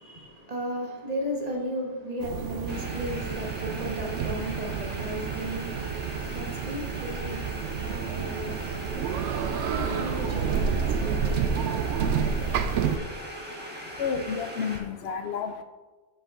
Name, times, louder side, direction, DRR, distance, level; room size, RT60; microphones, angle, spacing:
voice 1, 0.0-9.0 9.5-11.2 12.1-12.2, equal, 35° right, 1.3 m, -35 dB
sound 1, 2.2-13.0, right 7 dB, 85° right, 0.9 m, -29 dB
sound 2, 2.7-14.8, right 1 dB, 10° right, 1.3 m, -40 dB
voice 2, 12.5-15.6, left 6 dB, 70° left, 0.8 m, -33 dB
7.6 x 6.5 x 3.8 m
omnidirectional pair, 1.2 m